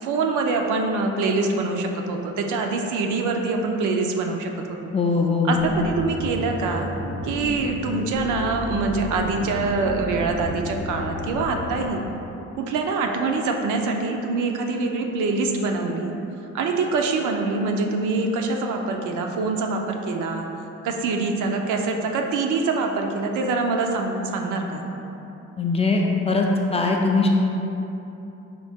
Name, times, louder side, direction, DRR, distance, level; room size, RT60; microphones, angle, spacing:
voice 1, 0.0-4.9 5.5-6.9 7.2-12.0 12.6-16.1 16.5-20.5 20.8-24.9, right 3 dB, 80° right, 3 dB, 0.5 m, -25 dB
voice 2, 4.9-5.5 25.6-27.3, left 3 dB, 20° left, 0 dB, 0.4 m, -21 dB
sound 1, 5.5-11.9, left 1 dB, 65° left, 0.7 m, -32 dB
4.1 x 2.7 x 3.5 m, 3.0 s
cardioid pair, 90°, 30 cm